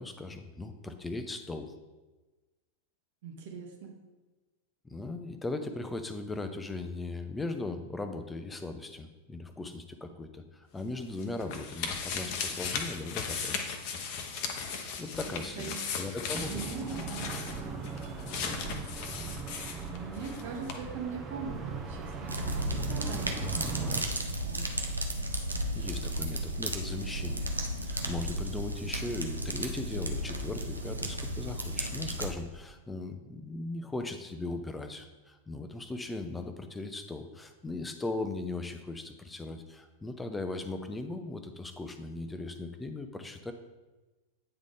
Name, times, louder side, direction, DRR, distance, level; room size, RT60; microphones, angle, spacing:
voice 1, 0.0-1.7 4.8-13.7 15.0-16.6 25.5-27.5 27.8-43.5, left 2 dB, 10° left, 8 dB, 0.6 m, -38 dB
voice 2, 3.2-3.9 14.7-14.8 15.2-15.8 16.5-17.3 17.6-17.8 19.9-24.0 24.4-24.7, right 6 dB, 55° right, 1 dB, 1.2 m, -41 dB
sound 1, 10.8-20.4 20.7-20.8, left 6 dB, 45° left, 0.8 m, -37 dB
sound 2, 16.3-24.0, right 4 dB, 25° right, 0.8 m, -39 dB
sound 3, 22.3-32.3, right 1 dB, 80° right, 0.7 m, -34 dB
9.0 x 3.7 x 3.6 m, 1.2 s
figure-of-eight pair, 90°, 0 cm